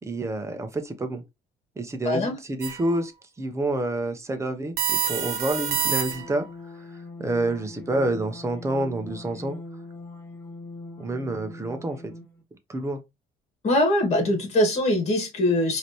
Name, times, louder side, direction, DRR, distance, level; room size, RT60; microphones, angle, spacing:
voice 1, 0.0-1.2 1.8-3.1 3.4-6.5 6.7-6.9 7.2-9.6 11.0-12.1 12.7-13.0, right 2 dB, 15° right, 1.0 m, -28 dB
voice 2, 2.0-2.4 13.6-15.8, left 1 dB, 40° left, 2.1 m, -22 dB
sound 1, 2.6-3.0 4.8-6.4, right 6 dB, 65° right, 1.1 m, -27 dB
sound 2, 5.6-12.4, left 2 dB, 10° left, 2.0 m, -42 dB
4.9 x 3.0 x 3.1 m
cardioid pair, 110°, 17 cm